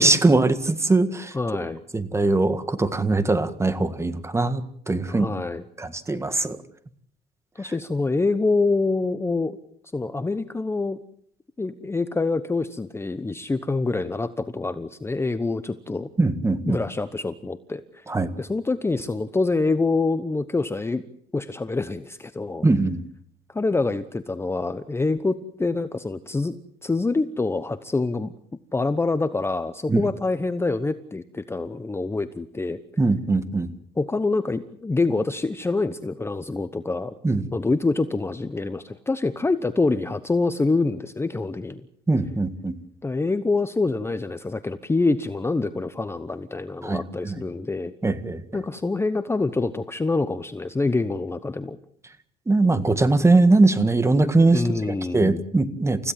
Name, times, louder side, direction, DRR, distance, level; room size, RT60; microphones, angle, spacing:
voice 1, 0.0-1.3 1.9-5.3 5.8-6.6 16.2-16.8 18.1-18.3 22.6-23.0 29.9-30.0 33.0-33.7 37.2-37.5 42.1-42.7 46.8-47.3 48.0-48.4 52.5-54.6 55.1-56.1, right 2 dB, 15° right, 11 dB, 1.8 m, -21 dB
voice 2, 1.3-1.8 5.1-5.6 7.6-9.6 9.9-11.0 11.6-16.1 16.6-18.0 18.4-21.0 21.3-22.6 23.5-26.6 26.8-28.3 28.7-32.8 34.0-37.1 37.5-41.9 43.0-47.9 48.5-51.8 54.5-55.4, left 3 dB, 15° left, 11 dB, 1.0 m, -26 dB
29.5 x 16.0 x 7.5 m, 0.67 s
cardioid pair, 110°, 17 cm